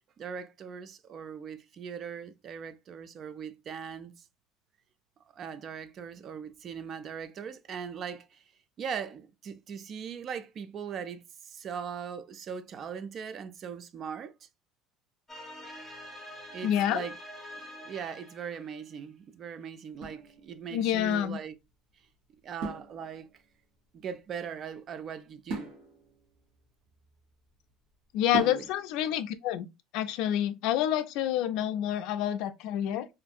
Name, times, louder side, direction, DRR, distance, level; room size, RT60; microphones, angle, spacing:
voice 1, 0.2-4.2 5.3-8.4 8.8-14.3 16.5-17.2 17.8-21.5 22.4-23.3 23.9-25.7 28.3-28.7, right 7 dB, 40° right, 0.3 m, -40 dB
sound 1, 15.3-18.8, equal, ahead, 0.7 m, -45 dB
voice 2, 16.6-17.0 20.7-21.4 28.1-29.7 29.9-33.1, left 11 dB, 70° left, 0.3 m, -28 dB
sound 2, 19.9-21.0 22.6-23.5 25.5-27.5 28.3-29.1, right 4 dB, 85° right, 1.0 m, -40 dB
2.7 x 2.5 x 2.3 m
cardioid pair, 130°, 0 cm